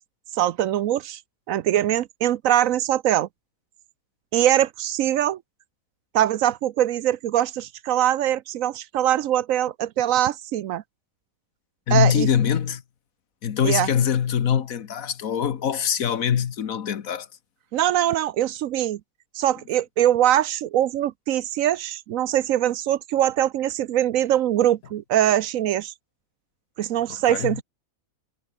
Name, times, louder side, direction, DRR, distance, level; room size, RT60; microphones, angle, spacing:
voice 1, 0.4-1.2 1.5-3.3 4.3-5.4 6.1-10.8 11.9-12.3 13.6-13.9 17.7-19.0 19.3-25.9 26.8-27.6, right 12 dB, 70° right, 1.0 m, -22 dB
voice 2, 11.9-12.8 13.4-17.3 27.3-27.6, left 8 dB, 70° left, 1.6 m, -23 dB
omnidirectional pair, 1.5 m